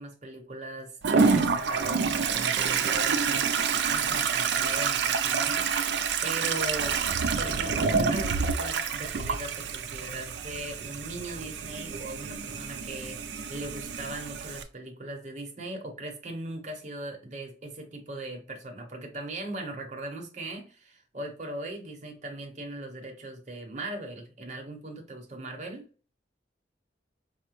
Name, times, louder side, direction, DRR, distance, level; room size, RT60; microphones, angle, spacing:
voice 1, 0.0-5.6 6.2-7.0 7.4-25.8, right 2 dB, 40° right, 2 dB, 0.8 m, -39 dB
Toilet flush, 1.0-14.6, right 5 dB, 70° right, 0.4 m, -28 dB
4.9 x 2.1 x 3.0 m, 0.37 s
head